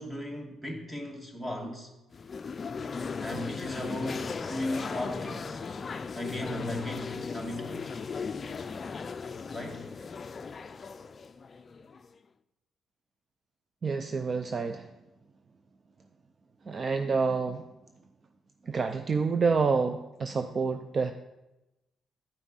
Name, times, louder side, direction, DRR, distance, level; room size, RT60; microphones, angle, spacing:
voice 1, 0.0-1.9 3.2-5.6 6.1-7.8 9.5-9.8, left 1 dB, 10° right, 2 dB, 1.8 m, -36 dB
sound 1, 2.1-12.1, left 5 dB, 40° left, 0.4 m, -37 dB
voice 2, 13.8-14.9 16.7-17.6 18.7-21.1, right 4 dB, 40° right, 8 dB, 0.4 m, -28 dB
10.0 x 5.9 x 4.0 m, 0.97 s
cardioid pair, 90°, 0 cm